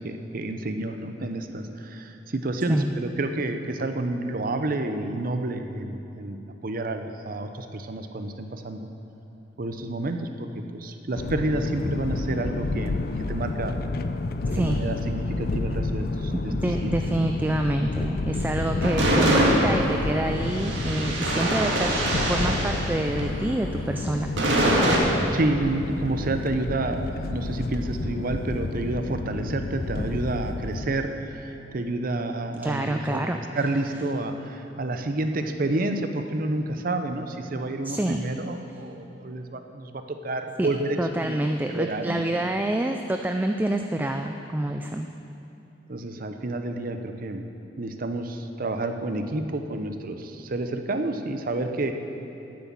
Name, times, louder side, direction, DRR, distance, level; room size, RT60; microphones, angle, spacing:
voice 1, 0.0-8.9 9.6-13.7 14.5-17.2 25.3-41.4 41.7-42.5 45.9-47.4 47.8-51.9, right 2 dB, 50° right, 7 dB, 0.7 m, -29 dB
sound 1, 11.1-30.9, left 2 dB, 55° left, 0.5 m, -30 dB
voice 2, 14.5-14.8 16.5-21.9 22.3-24.3 32.6-33.6 37.8-38.2 40.6-40.7 41.0-45.1, right 1 dB, 10° right, 4 dB, 0.3 m, -27 dB
sound 2, 18.8-23.6 24.4-25.0, right 1 dB, 80° right, 1.8 m, -24 dB
9.6 x 8.1 x 7.5 m, 2.8 s
head